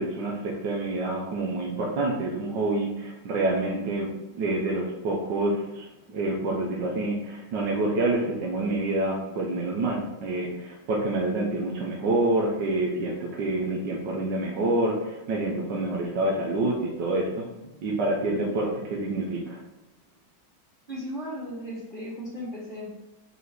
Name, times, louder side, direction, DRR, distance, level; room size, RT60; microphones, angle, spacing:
voice 1, 0.0-4.1 4.3-17.5 17.8-19.6, right 2 dB, 65° right, -2 dB, 1.6 m, -27 dB
voice 2, 20.9-22.9, equal, 20° right, -8 dB, 2.7 m, -36 dB
5.6 x 4.6 x 6.1 m, 1.0 s
omnidirectional pair, 2.2 m